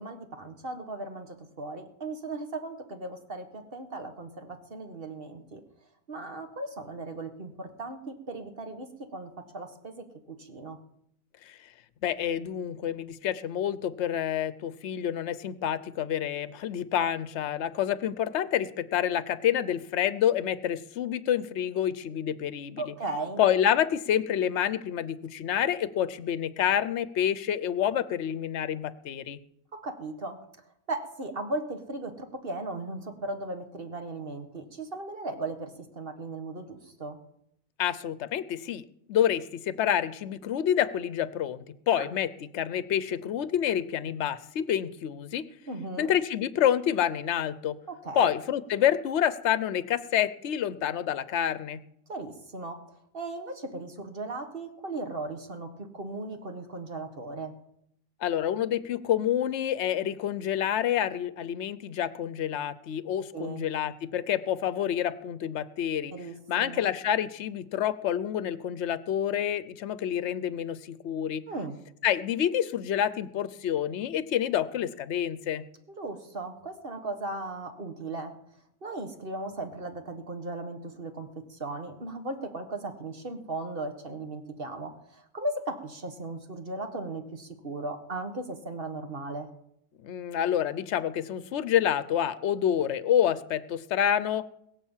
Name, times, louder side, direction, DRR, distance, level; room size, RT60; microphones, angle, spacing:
voice 1, 0.0-5.6 6.1-10.8 22.8-23.4 29.7-30.4 30.9-37.2 41.9-42.1 45.7-46.1 47.9-48.3 52.1-52.8 53.1-57.5 63.3-63.7 66.1-66.8 71.5-71.8 76.0-78.4 78.8-89.5, right 2 dB, 45° right, 6 dB, 1.9 m, -37 dB
voice 2, 12.0-22.9 23.4-29.4 37.8-45.4 46.0-47.8 48.1-51.8 58.2-66.1 66.5-71.4 72.0-75.6 90.0-94.4, left 10 dB, 65° left, 16 dB, 1.0 m, -28 dB
21.5 x 7.5 x 7.3 m, 0.75 s
omnidirectional pair, 1.3 m